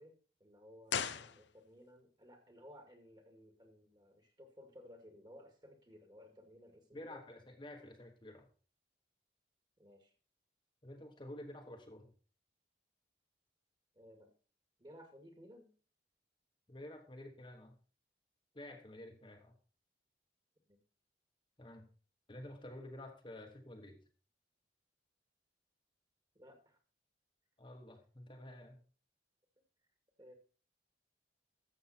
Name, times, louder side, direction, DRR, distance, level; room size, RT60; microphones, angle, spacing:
voice 1, 0.0-7.3 9.8-10.1 13.9-14.3 14.8-15.7 20.7-20.8 26.3-26.8 28.6-28.7 30.2-30.3, equal, 25° right, 5 dB, 2.1 m, -58 dB
sound 1, 0.9-2.0 2.2-2.3, left 8 dB, 80° left, 0.7 m, -39 dB
voice 2, 6.9-8.5 10.8-12.1 16.7-17.8 18.5-19.5 21.6-21.9 22.3-24.0 27.6-28.8, left 1 dB, 25° left, 3 dB, 1.2 m, -50 dB
13.0 x 7.4 x 4.3 m, 0.37 s
head